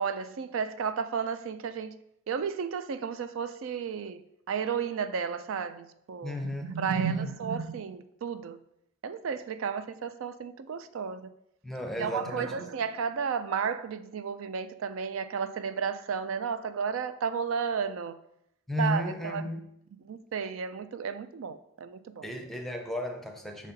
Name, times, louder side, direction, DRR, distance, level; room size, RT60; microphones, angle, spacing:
voice 1, 0.0-2.0 2.3-8.6 9.0-11.3 12.0-18.2 18.8-19.4 20.0-22.3, right 6 dB, 85° right, 0.4 m, -33 dB
voice 2, 6.2-7.3 11.6-12.7 18.7-19.7 22.2-23.7, equal, ahead, 0.6 m, -34 dB
6.2 x 4.1 x 3.9 m
head